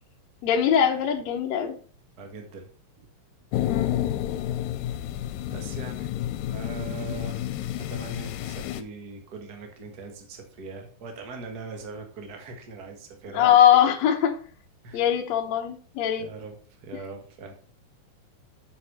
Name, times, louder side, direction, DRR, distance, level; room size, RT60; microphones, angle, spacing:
voice 1, 0.4-1.8 3.7-4.0 13.3-14.3 14.9-16.3, left 9 dB, 65° left, 2.0 m, -21 dB
voice 2, 2.2-2.7 3.0-3.1 5.5-6.1 6.5-7.5 7.7-13.5 14.8-15.1 16.2-17.5, right 4 dB, 40° right, 1.5 m, -41 dB
sound 1, 3.5-8.8, left 12 dB, 85° left, 2.3 m, -30 dB
7.3 x 7.1 x 4.2 m
omnidirectional pair, 3.9 m